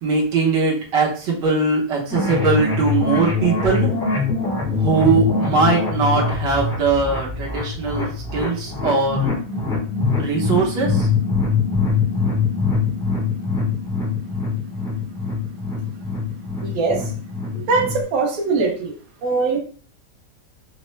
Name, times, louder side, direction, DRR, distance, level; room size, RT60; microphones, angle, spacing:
voice 1, 0.0-3.9 4.8-9.3 10.2-11.1, right 4 dB, 80° right, -3 dB, 1.7 m, -20 dB
sound 1, 2.1-18.0, left 4 dB, 5° left, 0.4 m, -23 dB
voice 2, 16.6-17.0 17.5-18.9 19.2-19.6, right 4 dB, 55° right, -2 dB, 1.3 m, -21 dB
4.3 x 2.1 x 3.1 m, 0.41 s
omnidirectional pair, 1.9 m